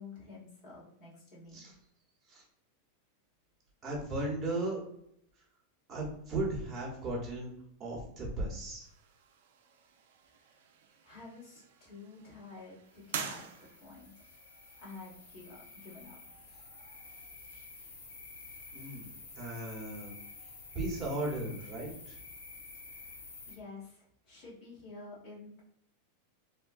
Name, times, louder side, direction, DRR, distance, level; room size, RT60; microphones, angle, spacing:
voice 1, 0.0-1.6 10.5-10.6 11.0-13.5 13.8-14.2 14.8-16.2 23.0-25.6, left 3 dB, 45° left, -5 dB, 1.5 m, -50 dB
voice 2, 3.8-4.8 5.9-7.5 7.8-8.9 18.7-19.1 19.4-20.1 20.7-22.2, right 2 dB, 20° right, -4 dB, 1.0 m, -36 dB
sound 1, 8.8-17.2, right 7 dB, 70° right, 0.4 m, -48 dB
sound 2, 12.9-23.6, left 3 dB, 85° left, 0.9 m, -50 dB
3.0 x 2.2 x 2.5 m, 0.72 s
supercardioid pair, 145°, 0 cm